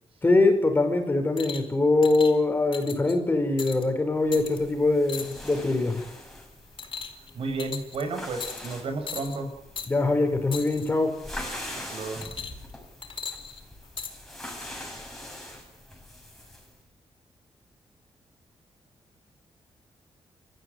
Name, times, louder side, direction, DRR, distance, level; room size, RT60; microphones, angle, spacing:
voice 1, 0.2-6.0 9.9-11.2, left 2 dB, 20° left, 5 dB, 4.8 m, -23 dB
sound 1, 1.4-1.7 2.0-2.3 2.7-3.1 3.6-3.8 4.3-4.6 5.1-5.6 6.0-6.2 6.8-7.3 7.6-8.0 8.4-8.7 9.1-9.4 9.8-9.9 10.5-10.9 12.2-12.7 13.0-14.1 14.9-15.0, left 6 dB, 55° left, 4.7 m, -37 dB
sound 2, 4.2-16.8, left 1 dB, 5° left, 6.7 m, -43 dB
voice 2, 7.3-9.5 11.9-12.2, right 3 dB, 70° right, 6 dB, 6.0 m, -32 dB
30.0 x 14.5 x 9.7 m, 0.84 s
wide cardioid pair, 145°, 10 cm